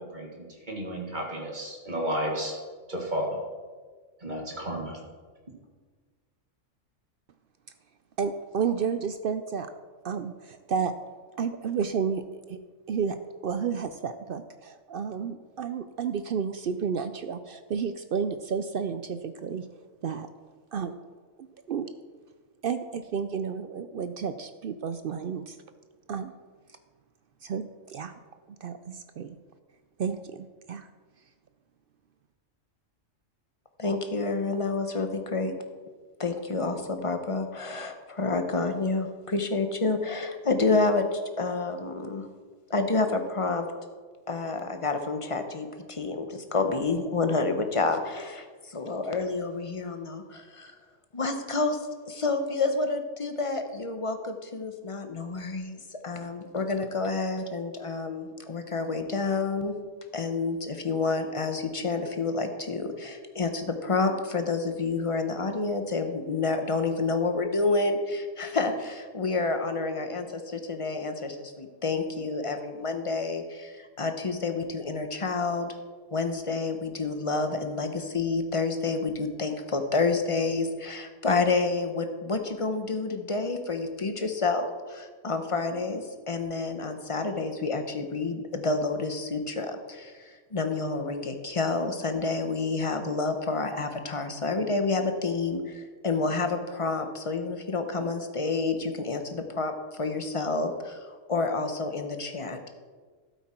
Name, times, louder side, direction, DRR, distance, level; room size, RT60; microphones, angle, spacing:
voice 1, 0.0-2.6 2.9-3.4 4.2-5.0, equal, 35° right, 0 dB, 1.9 m, -32 dB
voice 2, 8.2-9.7 10.0-10.9 11.4-12.6 12.9-19.7 20.0-20.3 20.7-21.0 21.4-21.9 22.6-25.6 26.1-26.3 27.4-28.2 28.6-29.4 30.0-30.9, right 6 dB, 60° right, 10 dB, 0.6 m, -31 dB
voice 3, 33.8-35.5 36.2-42.3 42.7-43.7 44.3-50.7 51.1-51.8 52.1-59.7 60.1-75.8 76.1-102.7, left 3 dB, 30° left, 6 dB, 0.9 m, -29 dB
12.5 x 8.3 x 4.4 m, 1.5 s
omnidirectional pair, 1.3 m